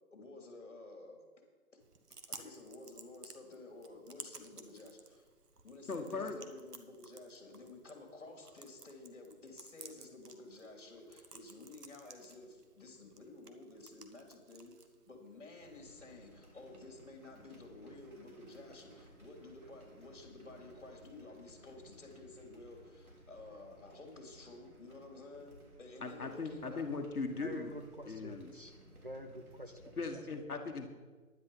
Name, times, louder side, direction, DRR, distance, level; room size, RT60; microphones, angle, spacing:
voice 1, 0.1-1.2 2.3-5.3 5.6-26.9, left 2 dB, 50° left, 3 dB, 3.0 m, -52 dB
Chewing mastication, 1.8-15.8, right 4 dB, 85° right, 1.5 m, -56 dB
voice 2, 5.9-6.4 26.0-27.7 28.1-28.6 30.0-30.9, left 4 dB, 70° left, 4 dB, 1.5 m, -39 dB
sound 1, 15.6-30.1, right 1 dB, 70° right, 3.5 m, -60 dB
voice 3, 27.4-30.2, equal, 35° right, 5 dB, 0.7 m, -48 dB
10.5 x 9.8 x 5.5 m, 1.4 s
hypercardioid pair, 175°, 46 cm